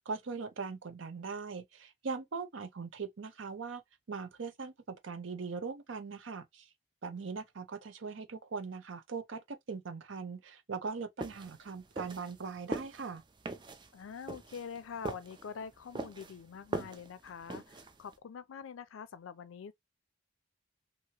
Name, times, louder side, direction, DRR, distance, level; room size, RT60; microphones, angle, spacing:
voice 1, 0.1-3.8 4.1-6.7 7.0-13.2, right 4 dB, 75° right, 0.6 m, -40 dB
sound 1, 11.2-18.1, right 2 dB, 25° right, 0.4 m, -42 dB
voice 2, 13.9-19.7, left 6 dB, 90° left, 0.4 m, -45 dB
2.9 x 2.6 x 2.8 m
head